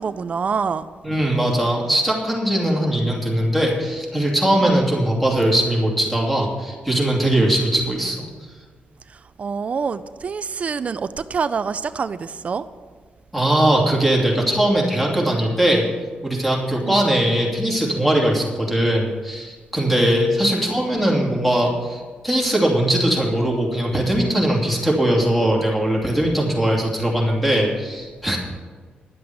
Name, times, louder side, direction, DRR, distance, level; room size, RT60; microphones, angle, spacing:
voice 1, 0.0-0.9 4.6-4.8 7.3-7.5 9.1-12.7 16.8-17.1 20.4-20.6, right 5 dB, 45° right, 0.4 m, -26 dB
voice 2, 1.0-8.3 13.3-15.9 16.2-28.4, right 1 dB, 5° left, 2.8 m, -20 dB
11.0 x 7.7 x 8.0 m
wide cardioid pair, 130°, 3 cm